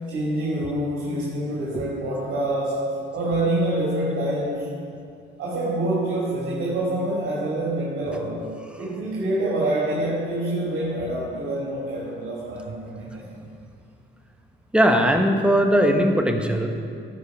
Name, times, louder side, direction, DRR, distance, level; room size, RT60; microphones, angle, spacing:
voice 1, 0.1-2.9 3.1-4.7 5.4-8.5 8.7-13.4, right 1 dB, 80° right, -7 dB, 2.5 m, -26 dB
voice 2, 14.7-16.8, equal, 5° right, 4 dB, 1.2 m, -20 dB
13.5 x 5.3 x 6.6 m, 2.3 s
cardioid pair, 90°, 20 cm